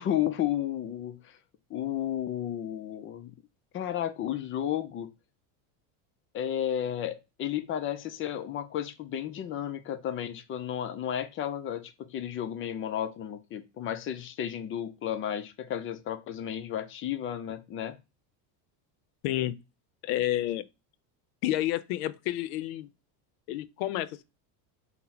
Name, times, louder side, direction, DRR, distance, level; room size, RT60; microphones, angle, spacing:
voice 1, 0.0-1.4 1.7-3.4 3.7-5.1 6.3-18.0, left 10 dB, 30° left, 0.4 m, -33 dB
voice 2, 19.2-19.6 20.0-20.6 21.4-22.9 23.5-24.2, left 14 dB, 75° left, 0.6 m, -30 dB
3.9 x 2.1 x 4.3 m
cardioid pair, 135°, 45 cm